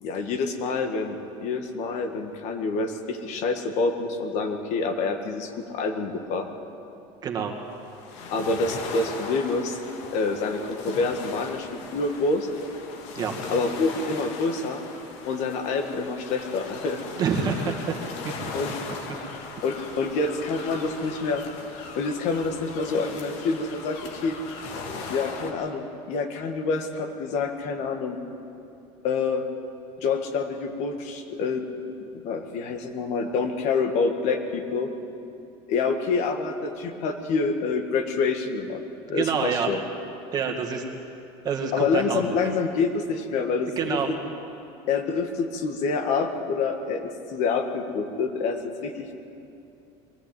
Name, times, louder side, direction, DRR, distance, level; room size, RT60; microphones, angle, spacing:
voice 1, 0.0-6.5 8.3-9.8 10.1-12.5 13.5-14.8 15.3-17.0 18.5-18.9 19.6-21.4 22.0-24.4 25.1-28.2 29.0-29.4 30.0-31.6 32.1-34.9 35.7-38.8 39.1-39.8 41.7-44.0 44.9-49.1, left 4 dB, 55° left, 5 dB, 1.9 m, -27 dB
voice 2, 7.2-7.6 13.1-13.3 17.2-18.0 39.1-39.7 40.3-40.8 41.4-42.5 43.8-44.1, right 6 dB, 30° right, 2 dB, 2.1 m, -27 dB
sound 1, 7.7-25.5, left 4 dB, 80° left, 2.7 m, -38 dB
21.5 x 14.5 x 9.3 m, 2.7 s
cardioid pair, 160°, 13 cm